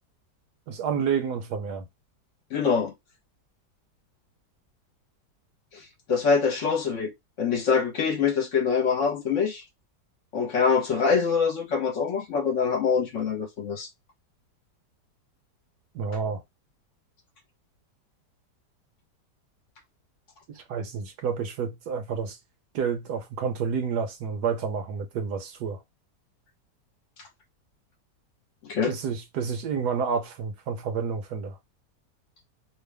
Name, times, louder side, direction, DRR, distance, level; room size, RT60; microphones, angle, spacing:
voice 1, 0.7-1.8 15.9-16.4 20.5-22.4 22.7-25.8 28.9-31.6, right 6 dB, 70° right, 1.3 m, -29 dB
voice 2, 2.5-2.9 6.1-7.1 7.4-9.6 10.3-13.9 28.7-28.9, left 5 dB, 50° left, 1.1 m, -24 dB
3.2 x 2.4 x 3.2 m
omnidirectional pair, 1.9 m